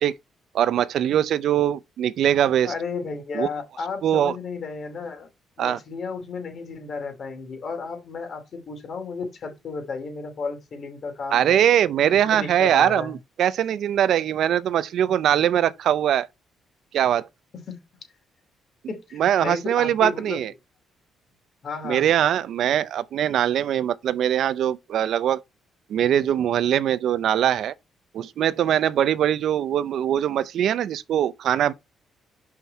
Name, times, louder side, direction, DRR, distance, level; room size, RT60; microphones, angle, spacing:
voice 1, 0.5-2.7 3.3-3.5 4.0-4.3 5.6-5.8 11.3-16.3 16.9-17.3 19.1-20.5 21.8-25.4 25.9-27.7 28.1-31.7, right 10 dB, 70° right, 0.5 m, -22 dB
voice 2, 2.6-5.3 5.6-11.6 12.3-13.2 17.7-17.8 18.9-20.4 21.6-22.1, left 4 dB, 55° left, 2.8 m, -33 dB
6.0 x 5.7 x 4.3 m
cardioid pair, 90°, 0 cm